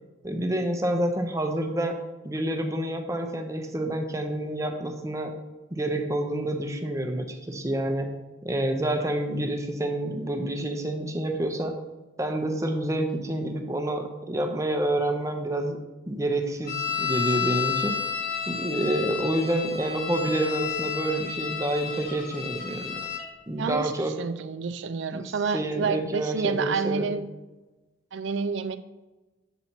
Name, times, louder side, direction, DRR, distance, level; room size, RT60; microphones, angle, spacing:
voice 1, 0.2-1.9 2.2-5.3 5.7-8.1 8.4-11.7 12.2-15.8 16.1-18.0 18.5-23.0 23.5-24.1 25.1-25.2 25.5-27.1, right 1 dB, 15° right, 4 dB, 0.6 m, -28 dB
sound 1, 16.7-23.3, left 8 dB, 45° left, 1.3 m, -31 dB
voice 2, 23.6-27.3 28.1-28.8, right 5 dB, 60° right, 12 dB, 0.4 m, -29 dB
7.8 x 4.2 x 4.4 m, 1.1 s
head